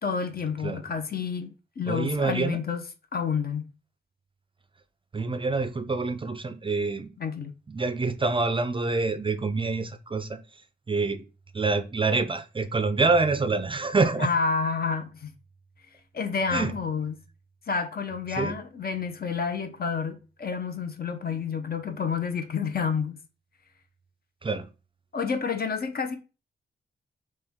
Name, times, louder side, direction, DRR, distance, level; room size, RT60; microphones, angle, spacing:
voice 1, 0.0-2.8 3.1-3.7 7.2-7.5 14.2-15.3 16.1-17.1 17.7-23.2 25.1-26.2, left 5 dB, 50° left, 0.7 m, -29 dB
voice 2, 1.9-2.6 5.1-7.1 7.7-10.4 10.9-11.2 11.5-14.3 16.5-16.8 18.3-18.5 24.4-24.7, right 3 dB, 25° right, 0.4 m, -26 dB
4.3 x 3.1 x 3.5 m
wide cardioid pair, 125°, 20 cm